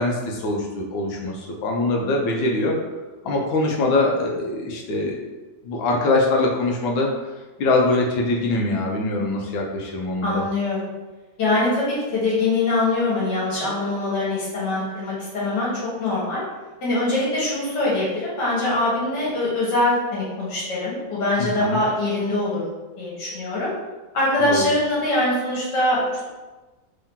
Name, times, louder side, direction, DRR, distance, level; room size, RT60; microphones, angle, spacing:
voice 1, 0.0-2.7 3.2-5.1 5.6-7.1 7.6-10.4 21.4-21.8 24.4-24.7, left 2 dB, 85° left, 0 dB, 1.5 m, -23 dB
voice 2, 10.2-10.9 11.4-16.4 16.8-22.6 23.0-23.7 24.1-26.2, left 2 dB, 65° left, -7 dB, 2.0 m, -23 dB
3.7 x 2.8 x 3.6 m, 1.2 s
omnidirectional pair, 2.1 m